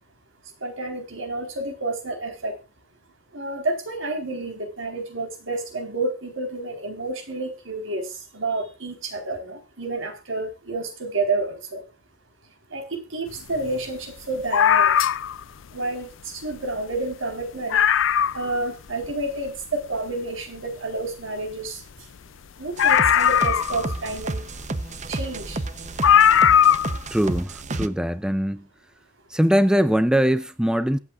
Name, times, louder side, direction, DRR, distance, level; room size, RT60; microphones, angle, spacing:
voice 1, 0.6-2.6 3.3-8.1 8.3-11.8 12.7-14.9 15.7-17.8 18.3-21.8 22.6-24.4 25.1-25.6, right 2 dB, 75° right, 4.4 m, -30 dB
sound 1, 14.5-15.4 16.5-16.6 16.9-17.0 17.4-17.5 17.7-18.5 19.0-19.1 22.8-24.1 25.2-25.3 26.0-27.0 27.3-27.4, left 9 dB, 70° left, 0.5 m, -18 dB
sound 2, 22.8-27.9, right 2 dB, 35° right, 0.9 m, -31 dB
voice 2, 27.1-28.7 29.3-31.0, equal, 5° right, 0.5 m, -21 dB
23.5 x 8.4 x 2.5 m
head